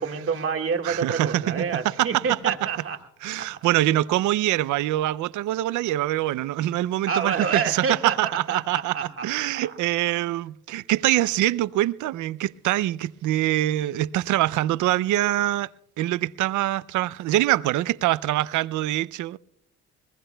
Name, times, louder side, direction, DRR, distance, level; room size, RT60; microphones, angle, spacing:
voice 1, 0.0-3.0 3.4-3.7 7.1-9.8 10.2-10.3, right 6 dB, 50° right, 1.8 m, -28 dB
voice 2, 0.8-1.7 2.0-2.2 3.2-15.7 16.0-19.4, right 15 dB, 75° right, 0.5 m, -24 dB
21.5 x 21.5 x 2.2 m
cardioid pair, 90°, 30 cm